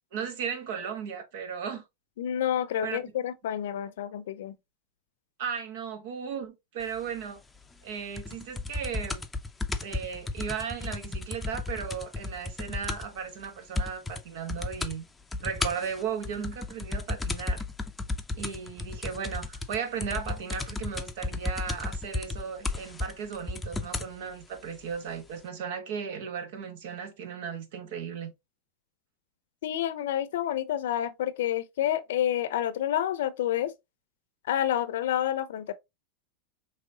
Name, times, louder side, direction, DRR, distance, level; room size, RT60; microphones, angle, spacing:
voice 1, 0.1-1.8 2.8-3.0 5.4-7.4 7.8-9.2 9.8-15.0 15.4-17.6 18.4-28.3, right 7 dB, 65° right, 1.1 m, -36 dB
voice 2, 2.2-4.6 29.6-33.7 34.4-35.7, left 11 dB, 80° left, 0.5 m, -29 dB
sound 1, 8.2-13.2 13.4-13.5 13.8-14.2 14.5-15.0 15.3-24.1 24.9-25.0, left 3 dB, 10° left, 0.5 m, -33 dB
4.9 x 3.1 x 2.7 m
hypercardioid pair, 115°, 0 cm